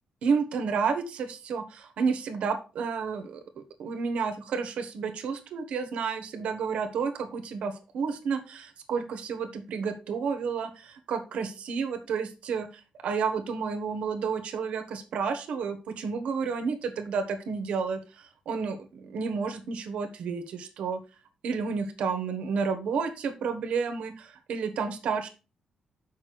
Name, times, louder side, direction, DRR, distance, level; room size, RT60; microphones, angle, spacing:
voice 1, 0.2-18.0 18.5-21.0 21.4-25.3, right 5 dB, 70° right, 9 dB, 1.3 m, -31 dB
6.8 x 5.5 x 4.6 m, 0.32 s
wide cardioid pair, 175°, 2 cm